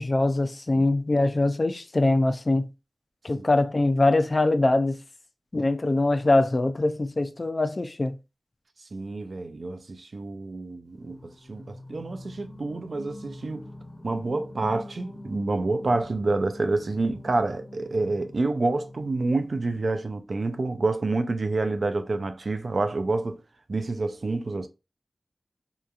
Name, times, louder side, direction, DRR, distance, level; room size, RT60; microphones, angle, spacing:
voice 1, 0.0-2.7 3.2-5.0 5.5-8.2, left 2 dB, 50° left, 0.3 m, -23 dB
voice 2, 8.9-13.6 14.0-23.4 23.7-24.7, right 3 dB, 70° right, 0.3 m, -28 dB
Singing, 10.9-19.9, left 1 dB, 10° left, 1.2 m, -45 dB
2.8 x 2.3 x 2.3 m
cardioid pair, 50°, 0 cm